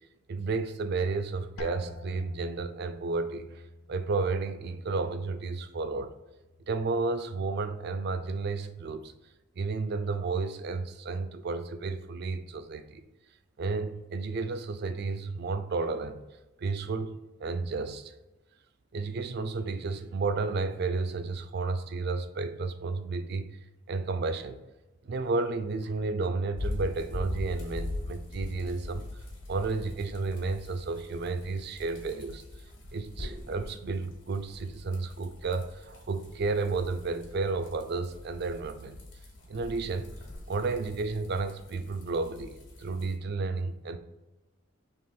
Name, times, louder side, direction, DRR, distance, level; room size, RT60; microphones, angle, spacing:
voice 1, 0.3-3.6 3.9-6.1 6.7-9.1 9.6-13.0 13.6-16.2 16.6-17.1 17.4-18.1 18.9-23.5 23.9-24.6 25.0-29.0 29.5-32.4 32.9-39.0 39.5-40.1 40.5-42.5 42.8-44.0, right 3 dB, 50° right, 0.3 m, -32 dB
sound 1, 1.6-7.2 7.5-8.2 8.8-9.2, left 2 dB, 75° left, 0.4 m, -49 dB
sound 2, 26.6-43.1, left 1 dB, 60° left, 1.3 m, -42 dB
3.7 x 3.0 x 4.2 m
head